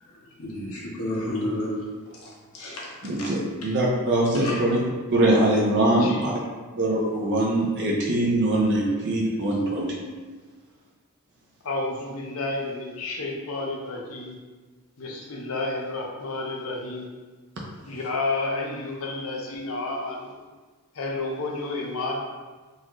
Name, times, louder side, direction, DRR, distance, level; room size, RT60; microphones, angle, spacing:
voice 1, 0.4-1.8 2.1-3.3 3.6-3.7 4.3-4.6, left 1 dB, 90° left, -4 dB, 0.9 m, -32 dB
voice 2, 3.0-4.8 5.1-6.3 6.7-10.0, right 1 dB, 55° right, -3 dB, 0.5 m, -22 dB
voice 3, 5.9-6.3 11.6-14.4 15.0-17.1 17.9-20.3 20.9-22.2, left 2 dB, 70° left, -1 dB, 0.6 m, -31 dB
4.0 x 2.4 x 2.9 m, 1.4 s
head